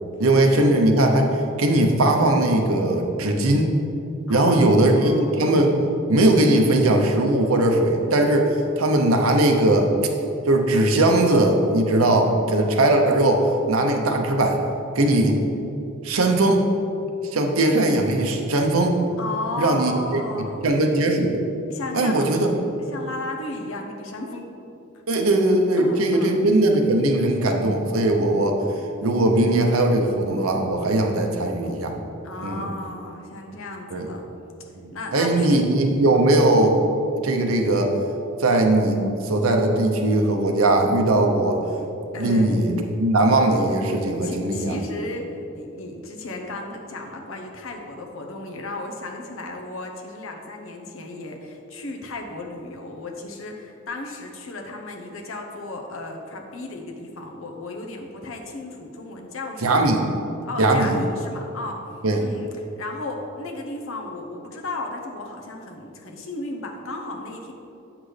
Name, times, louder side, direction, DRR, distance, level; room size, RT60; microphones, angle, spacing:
voice 1, 0.2-3.7 4.3-5.7 6.1-9.9 10.5-14.6 14.9-15.4 16.0-16.7 17.3-19.0 19.6-20.2 20.6-21.4 21.9-22.5 25.1-28.6 29.0-31.9 32.4-32.6 33.9-34.1 34.8-36.8 37.2-37.9 38.4-41.7 42.2-44.8 59.6-60.0 60.6-61.0 62.0-62.2, right 1 dB, 85° right, 3 dB, 0.8 m, -19 dB
voice 2, 4.3-5.4 19.2-20.6 21.7-22.3 22.9-24.5 25.1-25.2 25.8-26.4 32.2-34.2 34.9-35.6 42.1-42.6 44.2-59.9 60.4-61.8 62.2-62.5 62.8-67.5, left 2 dB, 70° left, 1 dB, 0.8 m, -34 dB
8.1 x 6.0 x 3.3 m, 2.9 s
head